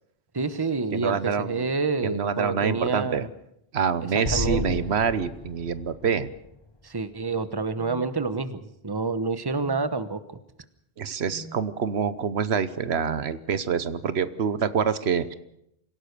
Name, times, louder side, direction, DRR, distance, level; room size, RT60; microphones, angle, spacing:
voice 1, 0.3-3.3 4.1-4.8 6.8-10.4, right 4 dB, 25° right, 12 dB, 1.1 m, -28 dB
voice 2, 0.9-1.7 2.0-3.3 3.7-6.3 11.0-15.4, right 6 dB, 85° right, 14 dB, 1.2 m, -26 dB
Explosion, 4.2-7.5, left 3 dB, 25° left, 1.0 m, -34 dB
sound 1, 7.7-8.0 9.5-9.8 11.2-11.5 12.9-13.2, equal, 55° right, 3.4 m, -43 dB
26.0 x 16.5 x 6.8 m, 0.77 s
omnidirectional pair, 1.1 m